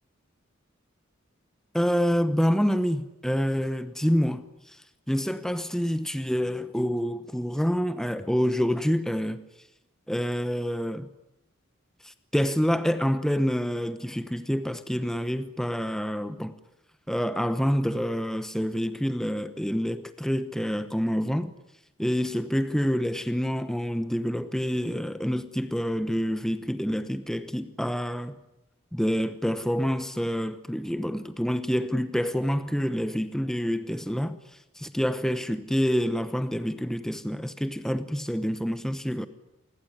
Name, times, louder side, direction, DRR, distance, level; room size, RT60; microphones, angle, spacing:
voice 1, 1.7-9.4 10.1-11.1 12.0-16.6 17.1-21.5 22.0-28.4 28.9-39.3, equal, ahead, 0.9 m, -27 dB
27.5 x 21.0 x 9.8 m
head